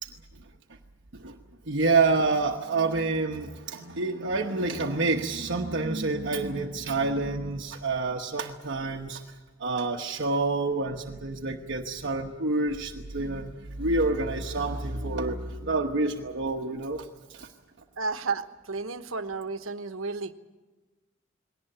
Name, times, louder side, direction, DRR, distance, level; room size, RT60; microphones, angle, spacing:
voice 1, 1.7-9.2 9.6-17.5, right 3 dB, 60° right, 2 dB, 1.1 m, -28 dB
voice 2, 18.0-20.3, right 4 dB, 80° right, 10 dB, 1.2 m, -32 dB
20.5 x 18.0 x 9.9 m, 1.2 s
head